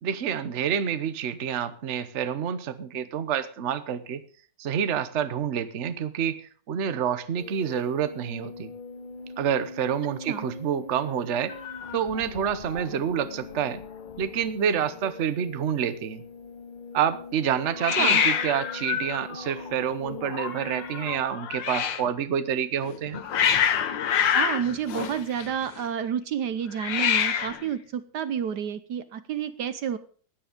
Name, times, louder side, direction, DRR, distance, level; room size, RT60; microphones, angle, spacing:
voice 1, 0.0-4.2 4.6-6.4 6.7-8.7 9.4-11.5 11.9-13.8 14.2-16.2 16.9-23.2, right 8 dB, 45° right, 12 dB, 1.1 m, -28 dB
sound 1, 7.4-21.2, left 3 dB, 25° left, 2.0 m, -43 dB
Hiss, 11.5-12.8 13.1-13.6 13.8-13.9 14.1-14.8 17.8-22.1 22.8-25.8 26.7-27.7, left 8 dB, 80° left, 1.8 m, -27 dB
voice 2, 17.9-18.2 24.3-30.0, right 8 dB, 70° right, 13 dB, 1.4 m, -30 dB
16.0 x 9.8 x 5.1 m, 0.44 s
omnidirectional pair, 2.0 m